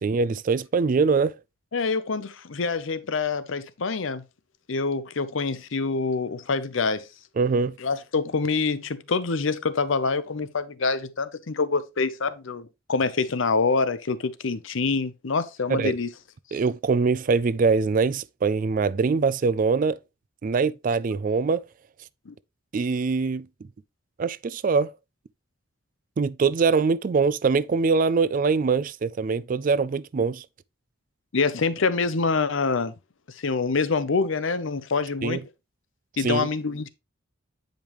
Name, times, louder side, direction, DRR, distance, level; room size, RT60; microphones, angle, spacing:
voice 1, 0.0-1.4 7.4-7.7 15.7-15.9 16.5-20.0 20.4-21.7 22.7-23.5 24.2-24.9 26.2-30.5 35.2-35.4 36.2-36.5, right 4 dB, 40° right, 0.3 m, -23 dB
voice 2, 1.7-4.2 4.7-7.1 7.8-16.1 22.3-22.4 31.3-32.9 33.3-35.4 36.2-36.9, left 4 dB, 70° left, 0.7 m, -26 dB
8.9 x 5.2 x 3.0 m
head